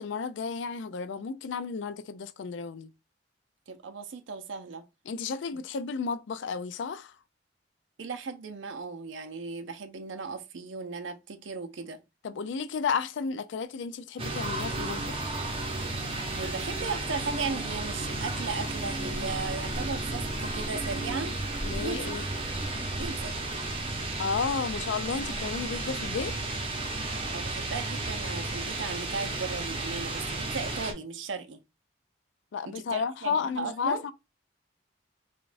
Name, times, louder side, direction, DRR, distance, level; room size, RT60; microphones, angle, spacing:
voice 1, 0.0-2.9 5.1-7.1 12.2-15.3 21.6-22.2 24.2-26.4 32.5-34.1, left 5 dB, 75° left, 0.4 m, -32 dB
voice 2, 3.7-4.8 8.0-12.0 16.3-21.4 21.7-22.2 23.0-23.4 27.3-31.6 32.7-34.0, right 4 dB, 80° right, 0.5 m, -36 dB
sound 1, 14.2-30.9, right 2 dB, 30° right, 0.7 m, -33 dB
5.0 x 2.3 x 2.5 m
head